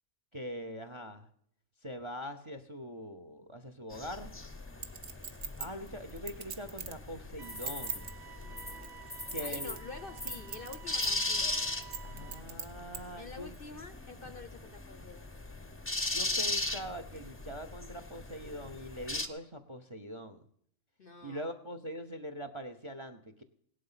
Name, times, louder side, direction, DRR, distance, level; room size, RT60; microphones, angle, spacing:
voice 1, 0.3-1.3 1.8-4.3 5.6-8.1 9.3-9.8 12.0-13.5 16.1-20.5 21.2-23.4, equal, 25° right, 10 dB, 0.7 m, -42 dB
sound 1, 3.9-19.3, left 2 dB, 10° left, 0.7 m, -38 dB
Chink clink, 4.8-7.0 7.5-8.1 8.8-9.9 10.2-10.8 11.1-11.2 11.8-13.0 13.5-13.6, right 6 dB, 50° right, 1.2 m, -40 dB
sound 2, 7.4-12.4, right 10 dB, 70° right, 1.6 m, -52 dB
voice 2, 8.4-9.1 9.4-11.6 13.2-15.3 21.0-21.5, left 4 dB, 50° left, 11 dB, 0.8 m, -48 dB
17.0 x 11.0 x 5.7 m, 0.67 s
omnidirectional pair, 1.6 m